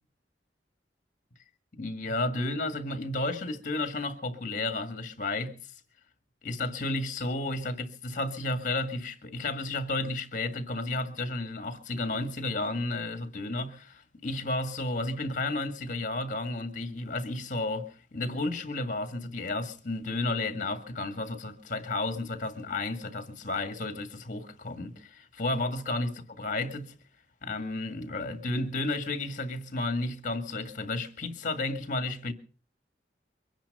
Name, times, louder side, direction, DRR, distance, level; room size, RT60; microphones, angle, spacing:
voice 1, 1.8-5.7 6.4-26.9 27.4-32.3, left 2 dB, 50° left, 1.9 m, -32 dB
23.5 x 10.5 x 5.4 m
head